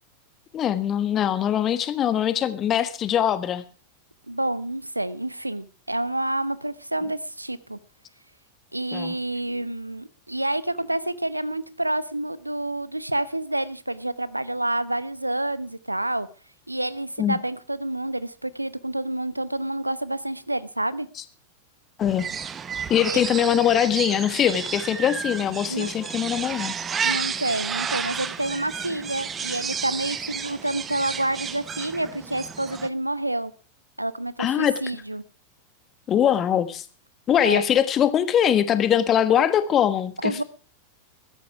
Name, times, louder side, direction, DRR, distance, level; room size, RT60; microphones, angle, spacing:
voice 1, 0.5-3.6 8.9-9.2 17.2-17.4 22.0-22.3 22.9-26.8 34.4-34.8 36.1-36.8 37.3-40.4, left 9 dB, 30° left, 13 dB, 1.6 m, -22 dB
voice 2, 4.3-7.8 8.7-16.3 16.7-21.1 23.1-23.2 25.7-25.9 27.0-33.5 34.0-35.2 37.4-37.6 40.2-40.4, right 1 dB, 85° right, 18 dB, 0.9 m, -28 dB
sound 1, 22.0-32.9, right 7 dB, 20° right, 1.1 m, -32 dB
15.0 x 13.5 x 4.8 m, 0.38 s
figure-of-eight pair, 90°, 0 cm